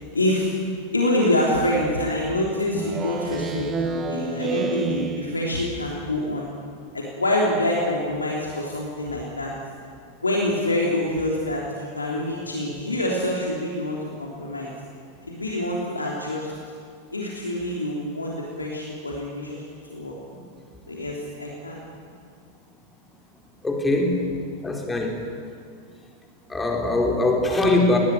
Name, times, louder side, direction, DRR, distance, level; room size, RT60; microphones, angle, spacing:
voice 1, 0.1-0.5 0.9-6.5 6.9-9.5 10.2-14.7 15.3-16.5 17.1-19.6 19.9-20.1 20.9-21.8, left 1 dB, 80° left, -2 dB, 3.3 m, -26 dB
Speech synthesizer, 2.7-5.8, right 4 dB, 25° right, 2.0 m, -29 dB
voice 2, 23.6-24.2 24.6-25.2 26.5-28.0, left 2 dB, 10° left, 1 dB, 4.4 m, -21 dB
21.5 x 18.5 x 9.5 m, 2.3 s
figure-of-eight pair, 90°, 0 cm